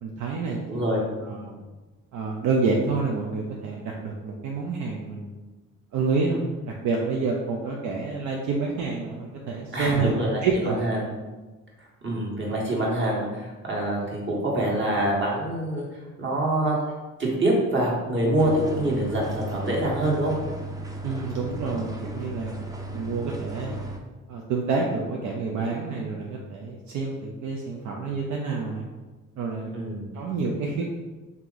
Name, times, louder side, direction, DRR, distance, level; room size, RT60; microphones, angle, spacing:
voice 1, 0.0-0.8 1.2-1.6 2.1-5.3 5.9-10.1 10.4-10.9 21.0-22.6 22.9-23.8 24.3-28.9 29.4-29.7 30.1-30.8, right 4 dB, 75° right, -1 dB, 0.6 m, -28 dB
voice 2, 0.7-1.0 9.7-11.0 12.0-15.8 16.2-16.8 17.2-20.3 29.7-30.0, right 1 dB, 40° right, -3 dB, 1.4 m, -25 dB
sound 1, 18.4-24.0, right 1 dB, 10° right, 0.5 m, -36 dB
3.6 x 2.8 x 3.9 m, 1.2 s
cardioid pair, 90°, 30 cm